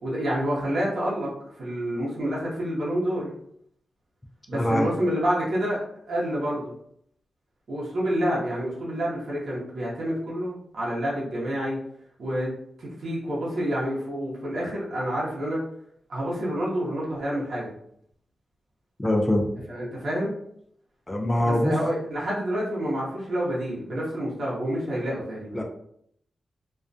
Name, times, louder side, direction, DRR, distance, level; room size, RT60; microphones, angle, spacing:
voice 1, 0.0-3.3 4.5-6.7 7.7-11.8 12.2-12.5 12.8-15.6 16.1-17.7 19.7-20.4 21.4-25.6, equal, 55° right, -6 dB, 0.8 m, -28 dB
voice 2, 4.5-4.9 19.0-19.5 21.1-21.8 25.5-25.6, left 1 dB, 15° left, 1 dB, 0.3 m, -23 dB
2.4 x 2.2 x 2.5 m, 0.69 s
wide cardioid pair, 135°, 0 cm